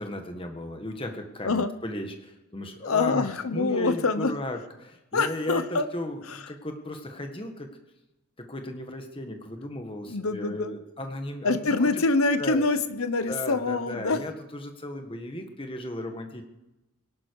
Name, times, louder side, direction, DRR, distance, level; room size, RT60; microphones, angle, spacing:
voice 1, 0.0-7.7 8.4-12.0 12.4-12.7 13.3-16.4, left 1 dB, 25° left, 5 dB, 1.7 m, -35 dB
voice 2, 2.8-4.3 5.1-5.9 6.3-6.4 10.1-10.7 11.4-14.2, left 3 dB, 70° left, 11 dB, 0.9 m, -25 dB
23.0 x 11.5 x 4.8 m, 0.99 s
head